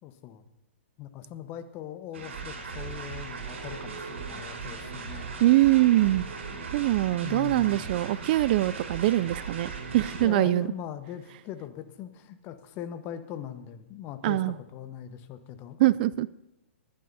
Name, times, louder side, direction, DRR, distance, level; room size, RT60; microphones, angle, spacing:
voice 1, 0.0-0.4 1.0-5.3 7.2-7.8 10.1-15.8, left 10 dB, 30° left, 9 dB, 1.2 m, -40 dB
sound 1, 2.1-10.3, right 5 dB, 65° right, 5.7 m, -38 dB
voice 2, 5.4-6.3 6.7-10.7 14.2-14.5 15.8-16.3, right 15 dB, 45° right, 19 dB, 0.4 m, -23 dB
27.0 x 11.5 x 2.8 m, 0.93 s
hypercardioid pair, 125°, 7 cm